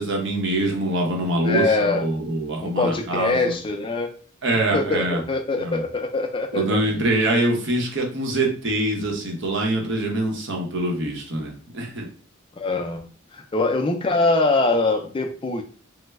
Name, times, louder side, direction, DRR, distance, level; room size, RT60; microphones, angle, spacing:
voice 1, 0.0-3.5 4.4-5.2 5.6-5.8 6.5-12.1, right 1 dB, 60° right, 1 dB, 0.8 m, -24 dB
voice 2, 1.4-2.1 2.6-4.1 4.7-6.8 12.6-13.1 13.3-15.6, left 3 dB, 25° left, 5 dB, 0.3 m, -23 dB
3.1 x 2.0 x 3.3 m, 0.41 s
head